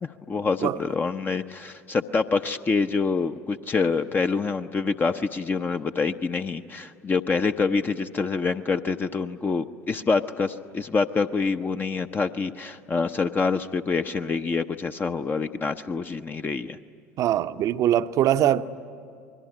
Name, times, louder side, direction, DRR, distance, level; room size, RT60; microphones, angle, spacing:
voice 1, 0.0-16.8, left 4 dB, 25° left, 0.7 m, -26 dB
voice 2, 17.2-18.6, right 11 dB, 45° right, 0.7 m, -22 dB
27.0 x 21.5 x 9.9 m
figure-of-eight pair, 65°, 8 cm